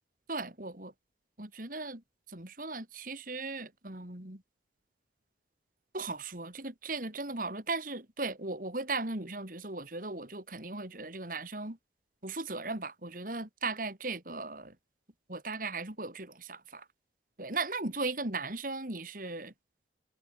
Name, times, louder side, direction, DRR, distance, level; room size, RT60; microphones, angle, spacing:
voice 1, 0.3-0.9 1.4-2.0 2.3-4.4 5.9-11.8 12.2-14.7 15.3-16.8 17.4-19.5, right 3 dB, 50° right, 3.2 m, -37 dB
head